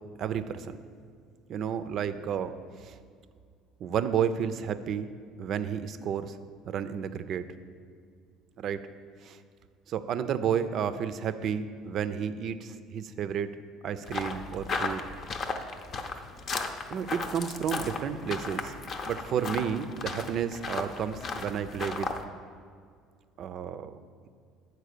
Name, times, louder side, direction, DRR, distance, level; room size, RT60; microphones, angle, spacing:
voice 1, 0.2-0.8 1.5-2.6 2.8-2.9 3.8-5.1 5.4-6.4 6.7-7.4 8.6-8.9 9.2-9.4 9.9-13.5 13.8-15.1 16.9-18.7 19.1-22.1 23.4-24.0, right 8 dB, 55° right, 11 dB, 0.4 m, -31 dB
sound 1, 14.1-22.2, left 3 dB, 45° left, 0.7 m, -35 dB
7.8 x 4.5 x 6.7 m, 2.1 s
supercardioid pair, 80°, 0 cm